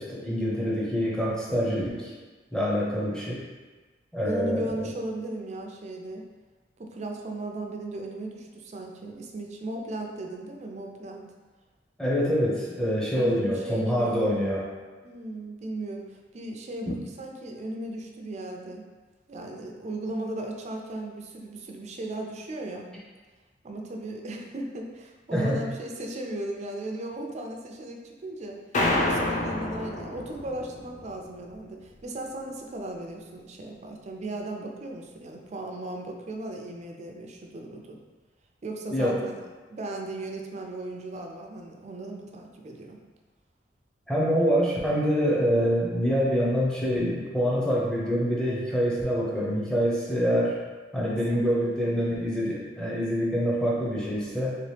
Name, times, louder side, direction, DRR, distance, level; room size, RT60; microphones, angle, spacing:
voice 1, 0.0-2.1 2.5-3.4 4.1-4.7 12.0-14.7 25.3-25.6 38.9-39.2 44.1-50.6 50.9-54.6, equal, 5° left, -6 dB, 0.7 m, -25 dB
voice 2, 4.2-6.2 6.8-11.3 13.2-14.4 15.0-18.8 19.3-22.9 23.6-28.6 29.0-38.0 38.6-39.4 39.7-43.0 51.3-52.1, right 1 dB, 40° right, 1 dB, 0.4 m, -36 dB
sound 1, 28.7-31.2, left 1 dB, 40° left, 0.5 m, -28 dB
3.0 x 2.9 x 3.3 m, 1.3 s
head